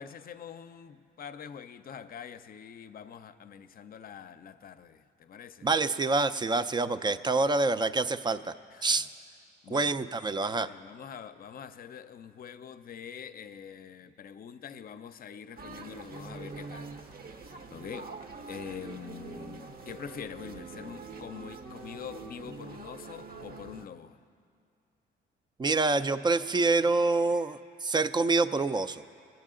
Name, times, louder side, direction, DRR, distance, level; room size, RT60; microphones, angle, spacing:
voice 1, 0.0-5.7 8.7-9.1 9.6-10.0 10.5-17.0 17.4-18.2 18.5-24.2, left 8 dB, 50° left, 0.5 m, -45 dB
voice 2, 5.6-8.5 8.8-9.1 9.7-10.7 25.6-29.0, right 3 dB, 20° right, 0.4 m, -26 dB
sound 1, 15.6-23.9, right 4 dB, 50° right, 0.8 m, -44 dB
22.0 x 8.2 x 3.7 m
cardioid pair, 90°, 20 cm